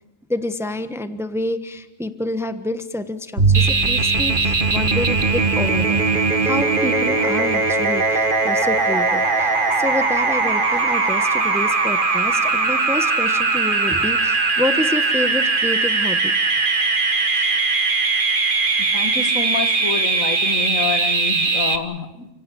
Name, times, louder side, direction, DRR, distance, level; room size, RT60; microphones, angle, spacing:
voice 1, 0.3-6.0 6.4-16.3 17.3-17.5, left 1 dB, ahead, 10 dB, 1.1 m, -28 dB
Bowed string instrument, 3.4-9.0, right 4 dB, 60° right, 3.9 m, -26 dB
sound 1, 3.5-21.8, right 3 dB, 40° right, 1.7 m, -20 dB
voice 2, 18.9-22.3, left 5 dB, 85° left, 9 dB, 2.1 m, -27 dB
30.0 x 16.5 x 8.5 m, 1.0 s
omnidirectional pair, 1.4 m